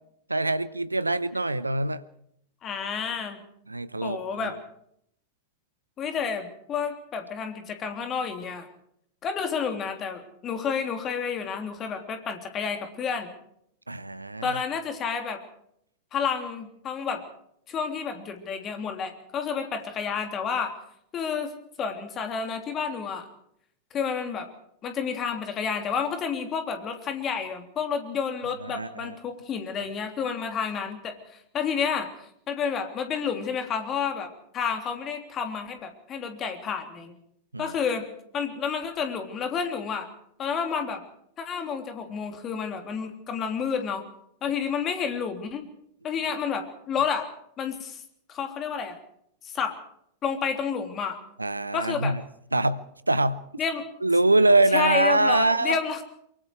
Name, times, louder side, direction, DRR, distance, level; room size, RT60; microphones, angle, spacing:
voice 1, 0.3-2.0 3.7-4.6 13.9-14.6 28.6-29.2 29.8-29.9 37.5-37.7 51.4-52.2 52.5-53.4 54.0-55.8, right 2 dB, 85° right, 16 dB, 0.8 m, -24 dB
voice 2, 2.6-3.4 4.0-4.5 6.0-8.7 9.2-13.3 14.4-15.4 16.1-17.2 17.7-20.7 21.1-21.5 21.8-23.3 23.9-24.5 24.8-31.2 31.5-32.1 32.5-37.1 37.6-38.0 38.3-40.1 40.4-41.0 41.4-44.0 44.4-45.6 46.0-47.3 47.6-48.0 48.3-49.0 49.4-49.8 50.2-51.2 51.7-52.1 53.6-53.8 54.7-56.0, left 6 dB, 30° left, 6 dB, 3.3 m, -30 dB
24.0 x 23.5 x 4.8 m, 0.72 s
figure-of-eight pair, 90°, 0 cm